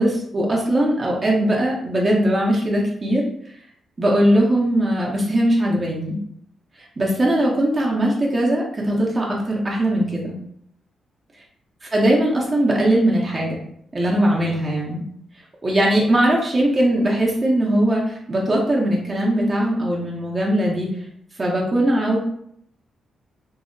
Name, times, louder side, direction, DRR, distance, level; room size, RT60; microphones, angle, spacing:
voice 1, 0.0-3.2 4.0-6.2 7.0-10.4 11.9-13.6 13.9-15.1 15.6-21.0 21.4-22.2, right 1 dB, 30° right, -3 dB, 0.6 m, -20 dB
2.6 x 2.0 x 2.5 m, 0.68 s
cardioid pair, 105°, 0 cm